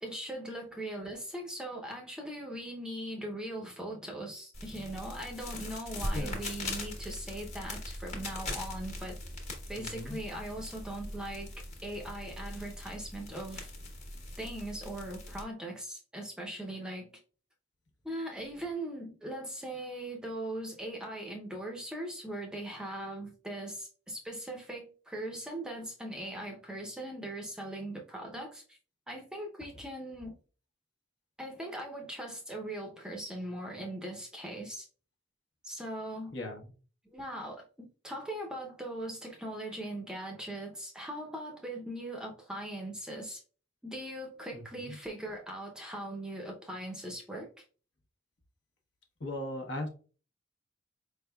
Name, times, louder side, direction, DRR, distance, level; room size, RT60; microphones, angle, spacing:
voice 1, 0.0-9.2 9.7-11.5 11.8-13.7 14.4-17.1 18.0-28.8 29.1-30.3 31.4-34.9 35.6-36.3 37.1-43.4 43.8-47.5, right 1 dB, 5° right, 0.6 m, -40 dB
sound 1, 4.5-15.4, left 1 dB, 35° left, 1.1 m, -41 dB
voice 2, 9.8-10.2 36.3-36.7 44.5-44.9 49.2-49.9, left 1 dB, 65° left, 0.9 m, -38 dB
4.7 x 3.3 x 2.2 m
head